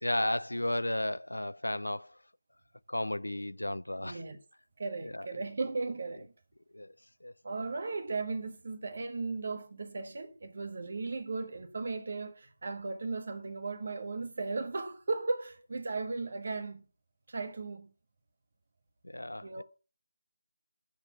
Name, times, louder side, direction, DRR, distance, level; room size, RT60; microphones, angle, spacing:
voice 1, 0.0-2.2 2.9-4.2 5.0-5.3 6.7-6.9 7.2-7.3 19.0-19.6, left 1 dB, 80° left, 0.4 m, -33 dB
voice 2, 4.0-4.4 4.8-6.3 7.4-16.8 17.3-17.9 19.4-19.6, right 3 dB, 50° right, 1.4 m, -36 dB
6.4 x 6.4 x 7.0 m
figure-of-eight pair, 155°, 0 cm